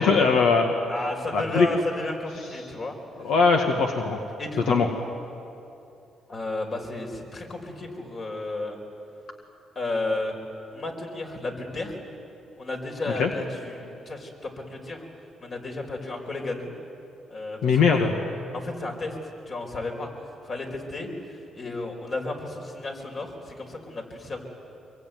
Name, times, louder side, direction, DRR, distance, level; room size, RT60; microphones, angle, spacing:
voice 1, 0.0-0.8 1.3-1.7 3.2-4.2 4.7-4.9 13.2-13.3 17.6-18.1, left 5 dB, 80° left, 3 dB, 1.9 m, -20 dB
voice 2, 0.9-3.0 4.4-4.8 6.3-8.8 9.8-10.3 10.7-12.0 12.6-15.1 15.4-16.7 17.3-18.1 18.5-19.2 19.5-20.1 20.4-21.1 21.5-24.4, left 2 dB, 45° left, 2 dB, 5.1 m, -33 dB
25.0 x 23.0 x 9.5 m, 2.7 s
cardioid pair, 90°, 0 cm